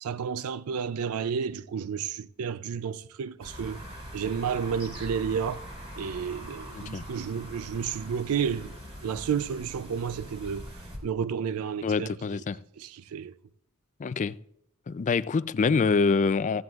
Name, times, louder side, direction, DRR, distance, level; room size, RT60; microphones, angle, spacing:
voice 1, 0.0-3.8 4.1-5.6 6.0-8.7 9.0-12.4 12.8-13.4, right 7 dB, 75° right, 0.4 m, -31 dB
sound 1, 3.4-11.0, equal, 25° right, 3.0 m, -42 dB
voice 2, 11.8-12.6 14.0-14.4 14.9-16.6, left 4 dB, 35° left, 0.3 m, -25 dB
15.5 x 15.5 x 2.4 m
head